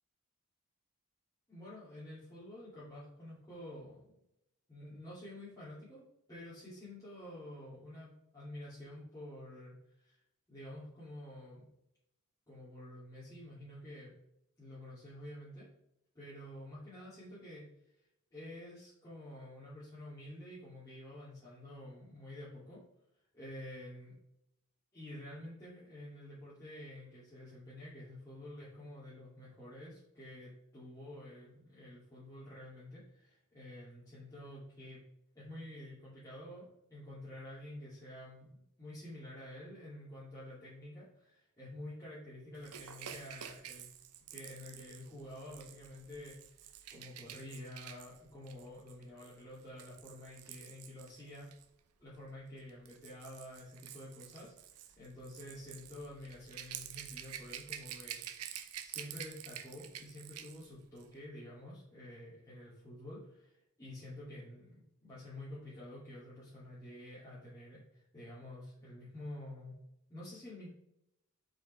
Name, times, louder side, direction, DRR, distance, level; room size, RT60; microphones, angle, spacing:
voice 1, 1.5-4.2 4.7-6.0 6.3-10.2 10.5-11.7 12.5-14.1 14.6-15.7 16.1-17.6 18.3-22.8 23.3-24.2 24.9-35.0 35.3-43.9 44.3-51.5 52.0-69.7 70.1-70.7, left 1 dB, 15° left, -11 dB, 2.5 m, -49 dB
Rattle / Rattle (instrument), 42.6-51.6 52.6-60.7 61.0-61.1, right 10 dB, 80° right, 0.7 m, -49 dB
8.1 x 5.2 x 3.3 m, 0.80 s
head